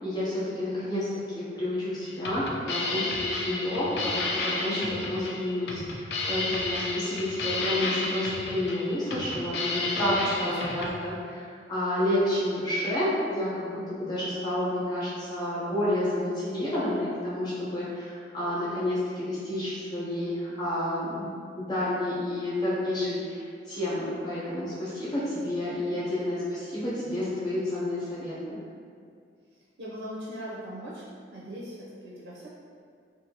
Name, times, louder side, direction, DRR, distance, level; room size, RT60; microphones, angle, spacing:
voice 1, 0.0-28.6, left 1 dB, 25° left, -10 dB, 0.8 m, -30 dB
sound 1, 2.0-10.9, left 3 dB, 65° left, 0.3 m, -32 dB
voice 2, 29.8-31.0 31.3-32.5, equal, 75° right, -6 dB, 0.4 m, -39 dB
2.6 x 2.3 x 2.7 m, 2.2 s
head